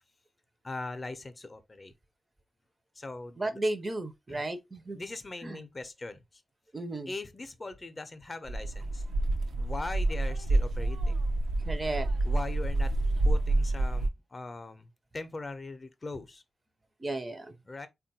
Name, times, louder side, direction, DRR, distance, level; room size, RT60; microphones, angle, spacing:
voice 1, 0.6-1.9 3.0-3.6 4.3-4.4 4.9-6.4 7.1-9.0 9.6-11.2 12.2-12.9 13.2-16.4 17.6-17.9, left 3 dB, 30° left, 0.5 m, -40 dB
voice 2, 3.4-5.0 5.4-5.6 6.7-7.1 11.7-12.1 17.0-17.5, right 2 dB, 25° right, 0.4 m, -34 dB
sound 1, 8.5-14.1, right 2 dB, 85° right, 0.4 m, -28 dB
3.7 x 2.2 x 2.7 m
cardioid pair, 95°, 0 cm